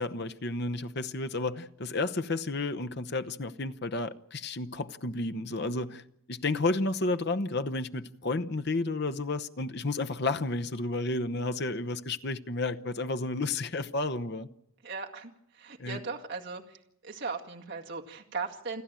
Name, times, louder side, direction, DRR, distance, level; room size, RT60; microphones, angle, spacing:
voice 1, 0.0-6.0 6.3-14.5 15.8-16.0, left 2 dB, 50° left, 0.9 m, -31 dB
voice 2, 14.8-16.8 17.0-18.8, right 4 dB, 50° right, 2.1 m, -38 dB
29.0 x 11.0 x 9.0 m
head